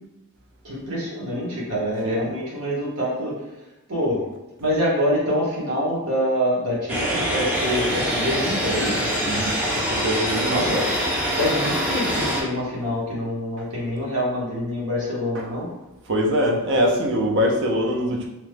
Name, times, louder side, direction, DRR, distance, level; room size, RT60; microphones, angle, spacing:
voice 1, 0.6-3.3 3.9-4.2 4.6-9.1 10.5-10.9 11.3-15.7, equal, 85° right, -5 dB, 1.1 m, -25 dB
sound 1, 6.9-12.4, equal, 10° right, 0.5 m, -24 dB
voice 2, 9.2-10.8 15.3-15.5 16.1-18.3, equal, 55° right, 0 dB, 0.5 m, -23 dB
3.0 x 2.2 x 3.2 m, 1.0 s
head